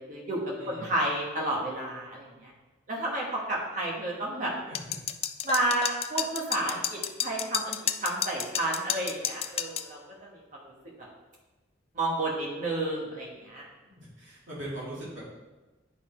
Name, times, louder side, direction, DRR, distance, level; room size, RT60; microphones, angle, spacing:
voice 1, 0.0-0.4 0.7-2.5 2.9-4.5 5.4-11.1 11.9-13.7, right 1 dB, 40° right, -3 dB, 1.3 m, -31 dB
voice 2, 0.6-0.9 4.7-4.9 14.0-15.2, right 1 dB, 75° right, -8 dB, 2.6 m, -40 dB
sound 1, 4.8-9.9, left 9 dB, 30° left, 0.3 m, -31 dB
9.8 x 4.1 x 4.4 m, 1.1 s
head